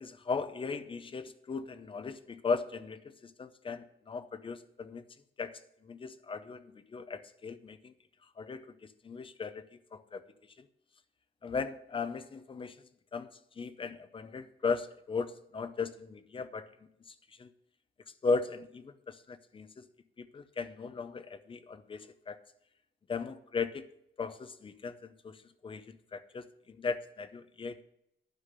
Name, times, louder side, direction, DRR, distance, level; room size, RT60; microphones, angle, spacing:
voice 1, 0.0-5.0 5.4-7.9 8.4-8.7 9.0-9.6 9.9-10.2 10.6-10.7 11.4-12.8 13.1-13.3 13.6-16.7 17.1-17.5 18.2-19.9 20.2-22.4 23.1-23.8 24.2-27.8, left 4 dB, 25° left, 12 dB, 0.6 m, -37 dB
11.5 x 5.8 x 6.6 m, 0.78 s
wide cardioid pair, 165°, 21 cm